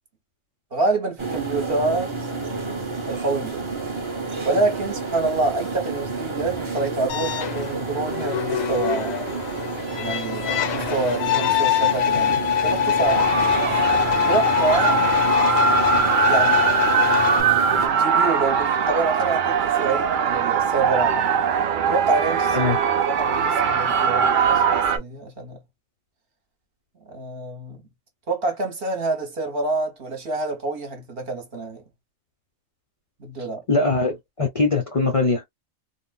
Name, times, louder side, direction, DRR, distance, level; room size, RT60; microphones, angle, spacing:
voice 1, 0.7-2.1 3.0-3.6 4.4-9.2 9.9-13.3 14.2-15.0 16.3-16.7 17.8-21.4 21.9-22.7 23.1-25.6 27.0-27.8 28.3-31.8 33.2-33.6, right 3 dB, 50° right, 1.0 m, -27 dB
sound 1, 1.2-17.9, right 3 dB, 25° right, 0.7 m, -30 dB
sound 2, 7.1-17.4, left 9 dB, 85° left, 1.0 m, -23 dB
sound 3, 13.0-25.0, right 7 dB, 75° right, 0.4 m, -21 dB
voice 2, 33.7-35.5, left 3 dB, 40° left, 0.4 m, -21 dB
3.5 x 2.1 x 2.2 m
omnidirectional pair, 1.4 m